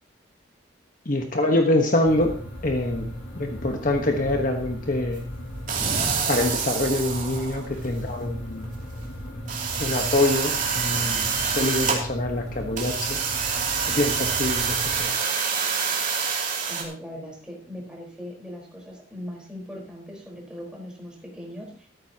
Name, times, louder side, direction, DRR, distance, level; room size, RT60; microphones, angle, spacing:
voice 1, 1.1-5.2 6.3-8.7 9.8-13.2 13.9-15.1, left 1 dB, 45° left, 4 dB, 1.3 m, -25 dB
sound 1, 2.0-15.0, equal, 85° left, 7.6 m, -37 dB
sound 2, 5.7-7.9 8.6-8.7 9.0-9.1 9.5-12.0 12.8-16.8, right 6 dB, 40° right, 2.7 m, -26 dB
voice 2, 16.7-21.9, equal, 5° right, -2 dB, 4.3 m, -39 dB
14.0 x 13.5 x 2.9 m, 0.41 s
head